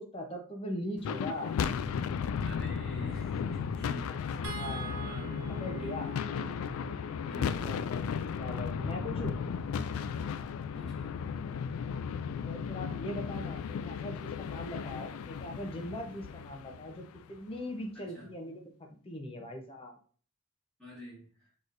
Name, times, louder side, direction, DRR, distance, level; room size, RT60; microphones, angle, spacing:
voice 1, 0.0-1.5 4.1-6.1 7.6-8.0 8.4-9.4 12.5-18.7 19.0-20.0, left 1 dB, 25° left, 2 dB, 0.9 m, -40 dB
sound 1, 1.0-17.4, left 6 dB, 85° left, 0.3 m, -35 dB
voice 2, 2.4-6.9 7.2-7.8 10.7-11.2 17.9-18.3 20.8-21.5, equal, 5° left, -8 dB, 2.2 m, -48 dB
sound 2, 4.4-10.8 12.3-12.5 12.8-13.0, right 5 dB, 85° right, 0.9 m, -48 dB
6.3 x 3.2 x 2.6 m, 0.42 s
head